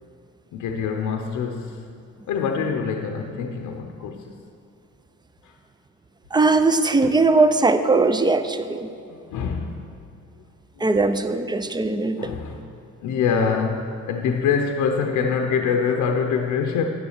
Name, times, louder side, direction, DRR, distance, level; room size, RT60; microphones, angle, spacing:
voice 1, 0.5-1.9 2.3-4.3 5.4-5.5 9.0-9.9 10.8-10.9 12.2-12.7 13.0-16.8, left 6 dB, 80° left, 3 dB, 0.7 m, -25 dB
voice 2, 6.3-8.9 10.8-12.3, right 3 dB, 15° right, 10 dB, 0.5 m, -19 dB
9.5 x 7.1 x 6.5 m, 2.4 s
cardioid pair, 90°, 30 cm